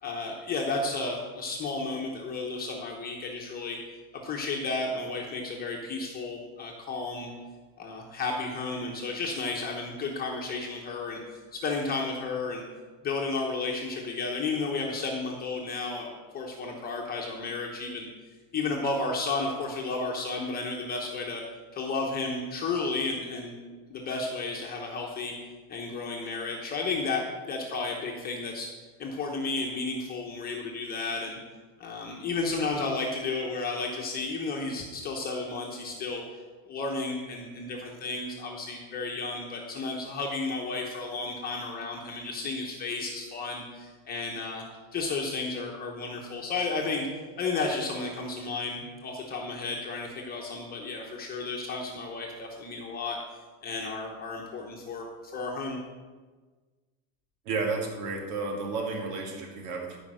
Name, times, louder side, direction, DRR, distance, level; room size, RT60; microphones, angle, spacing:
voice 1, 0.0-3.8 4.1-7.3 7.8-12.6 13.0-18.1 18.5-21.4 21.7-23.6 23.9-25.3 25.7-28.7 29.0-31.4 31.8-36.2 36.7-44.6 44.9-47.1 47.4-53.2 53.6-55.8, left 3 dB, 20° left, -1 dB, 1.0 m, -33 dB
voice 2, 57.5-60.0, right 3 dB, 85° right, 1 dB, 2.2 m, -32 dB
13.5 x 5.2 x 6.3 m, 1.4 s
cardioid pair, 170°, 43 cm